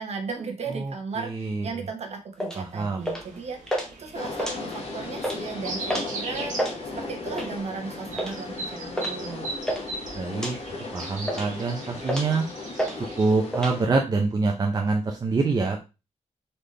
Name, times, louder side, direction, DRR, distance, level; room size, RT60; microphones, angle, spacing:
voice 1, 0.0-6.5 7.0-9.5, right 5 dB, 55° right, 4 dB, 1.1 m, -36 dB
voice 2, 0.7-1.7 2.6-3.0 10.1-10.6 10.9-12.4 13.0-15.8, right 3 dB, 30° right, 2 dB, 0.6 m, -25 dB
sound 1, 2.4-2.6 3.1-3.4 3.7-3.9 4.3-4.9 5.2-5.4 5.9-6.1 6.4-6.8 7.3-7.6 8.2-8.4 9.0-9.2 9.4-9.8 10.3-10.5 11.0-11.6 12.0-12.4 12.8-13.0 13.2-13.7, equal, 5° left, 1.0 m, -29 dB
sound 2, 3.0-13.3, right 3 dB, 80° right, 1.4 m, -40 dB
sound 3, 4.1-13.8, left 3 dB, 50° left, 1.1 m, -37 dB
4.1 x 3.4 x 3.3 m, 0.28 s
wide cardioid pair, 155°, 13 cm